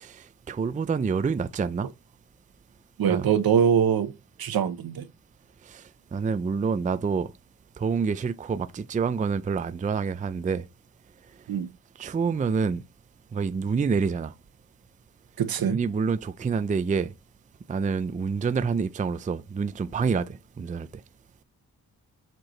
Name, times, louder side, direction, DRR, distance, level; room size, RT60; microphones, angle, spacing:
voice 1, 0.0-1.9 3.1-3.3 5.7-5.8 6.1-7.3 7.8-10.6 12.0-12.8 13.3-14.3 15.6-17.1 17.7-20.9, right 5 dB, 20° right, 0.4 m, -27 dB
voice 2, 3.0-4.1 4.4-5.0 11.5-11.7 15.4-15.8, right 8 dB, 70° right, 1.0 m, -23 dB
7.6 x 4.6 x 3.2 m
wide cardioid pair, 140°, 37 cm